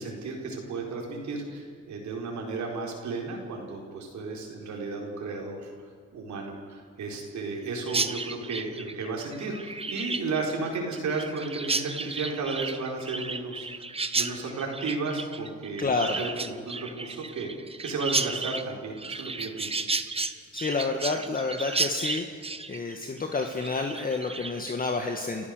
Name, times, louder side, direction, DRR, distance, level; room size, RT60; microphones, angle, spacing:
voice 1, 0.0-5.7 6.1-17.5 17.8-19.8, right 3 dB, 70° right, -1 dB, 4.5 m, -34 dB
Chirp tweet, 7.9-24.7, right 3 dB, 20° right, 1.0 m, -33 dB
voice 2, 15.8-16.2 20.5-22.4 22.7-25.5, left 3 dB, 30° left, 4 dB, 1.7 m, -29 dB
29.5 x 14.0 x 6.7 m, 2.1 s
cardioid pair, 90°, 30 cm